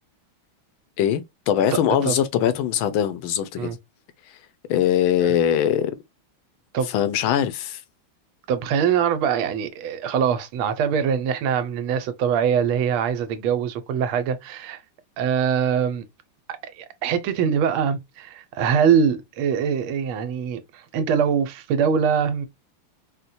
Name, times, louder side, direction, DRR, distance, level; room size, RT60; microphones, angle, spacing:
voice 1, 1.0-3.7 4.7-5.9 6.9-7.8, left 10 dB, 75° left, 1.4 m, -22 dB
voice 2, 8.5-14.8 15.2-16.0 16.5-22.5, right 7 dB, 80° right, 1.5 m, -23 dB
4.3 x 2.1 x 2.5 m
omnidirectional pair, 2.3 m